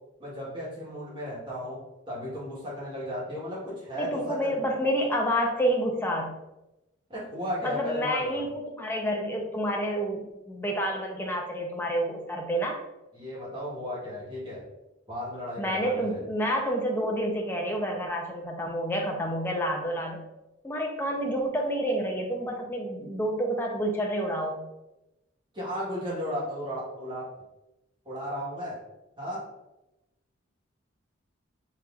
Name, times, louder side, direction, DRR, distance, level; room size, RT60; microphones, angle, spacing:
voice 1, 0.2-1.8 2.1-4.6 7.1-8.4 13.1-14.6 15.1-16.2 25.5-27.3 28.0-28.8 29.2-29.4, equal, 25° right, -6 dB, 1.3 m, -35 dB
voice 2, 4.0-6.3 7.6-12.8 15.6-20.2 20.6-24.6, equal, 10° left, 0 dB, 0.6 m, -29 dB
5.7 x 2.9 x 2.4 m, 0.95 s
head